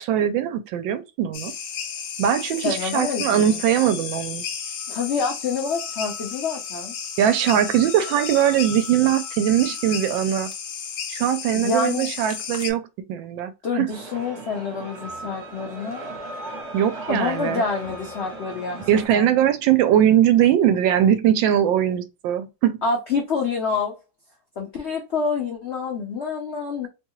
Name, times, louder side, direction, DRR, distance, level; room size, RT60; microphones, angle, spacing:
voice 1, 0.0-1.5 2.2-4.5 7.2-10.5 11.1-12.8 13.1-13.9 16.7-17.6 18.9-22.8, right 10 dB, 80° right, 1.3 m, -21 dB
sound 1, 1.3-12.7, left 7 dB, 65° left, 1.0 m, -33 dB
voice 2, 2.6-3.6 4.9-6.9 11.5-12.1 13.6-16.2 17.1-19.3 22.8-23.9 24.6-26.9, left 4 dB, 85° left, 0.5 m, -27 dB
sound 2, 13.9-19.1, right 1 dB, 60° right, 1.4 m, -37 dB
3.2 x 2.3 x 2.9 m
omnidirectional pair, 2.1 m